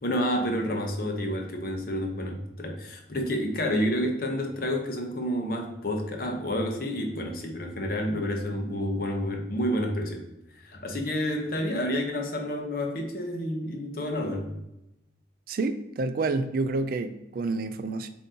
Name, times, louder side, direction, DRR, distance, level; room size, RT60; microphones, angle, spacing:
voice 1, 0.0-10.2 10.6-14.5, equal, 55° left, 2 dB, 0.8 m, -29 dB
voice 2, 15.5-18.1, right 3 dB, 55° right, 10 dB, 0.3 m, -29 dB
7.2 x 2.7 x 2.7 m, 0.89 s
head